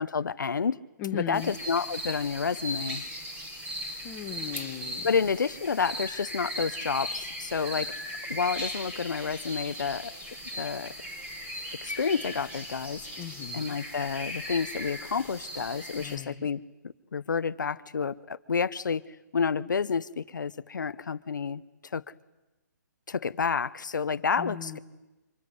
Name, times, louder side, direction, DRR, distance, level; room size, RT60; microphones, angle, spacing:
voice 1, 0.0-0.8 1.1-3.0 5.0-7.9 8.3-10.1 10.5-10.9 11.8-13.0 13.5-16.6 17.1-19.0 19.3-21.6 21.9-22.0 23.1-24.8, left 5 dB, 80° left, 13 dB, 0.9 m, -29 dB
voice 2, 1.0-1.5 4.0-5.3 13.1-13.8 16.0-16.5 24.4-24.8, left 9 dB, 20° left, 4 dB, 1.7 m, -38 dB
sound 1, 1.3-16.2, equal, 15° right, 4.3 m, -38 dB
25.5 x 24.0 x 9.6 m, 1.0 s
hypercardioid pair, 155°, 10 cm